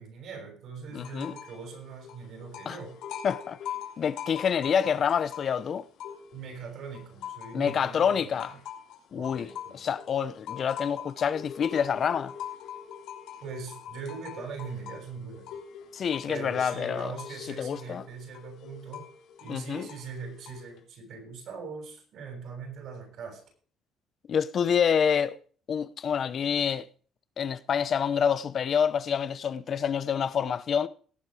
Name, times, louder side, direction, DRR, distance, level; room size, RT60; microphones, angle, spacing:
voice 1, 0.0-3.0 6.3-8.6 9.1-9.9 13.4-15.5 16.3-19.1 19.4-23.4, right 5 dB, 65° right, 7.0 m, -41 dB
voice 2, 0.9-1.3 2.7-2.8 3.2-3.6 4.0-5.9 7.5-8.5 9.1-9.5 9.7-12.3 15.9-17.1 17.6-18.0 19.5-19.9 24.3-25.4 25.7-26.9 27.4-30.9, left 7 dB, 40° left, 0.8 m, -27 dB
sound 1, 1.0-1.6 1.9-6.5 6.9-20.8, left 9 dB, 80° left, 3.5 m, -43 dB
18.0 x 8.0 x 4.9 m
cardioid pair, 140°, 0 cm